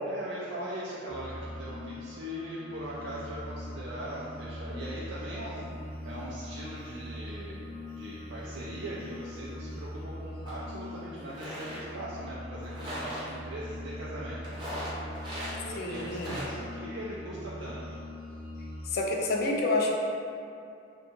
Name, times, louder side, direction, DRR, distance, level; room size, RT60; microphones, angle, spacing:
voice 1, 0.1-7.6 8.0-14.6 15.5-17.8, right 1 dB, 75° right, -7 dB, 0.3 m, -40 dB
sound 1, 1.1-18.9, left 1 dB, 50° right, 0.9 m, -42 dB
sound 2, 10.5-10.6 11.1-11.9 12.6-13.3 14.4-15.6 15.9-16.5, equal, 25° right, 0.6 m, -39 dB
voice 2, 15.8-16.4 18.9-20.0, left 2 dB, 55° left, 0 dB, 0.3 m, -28 dB
2.7 x 2.2 x 2.8 m, 2.5 s
head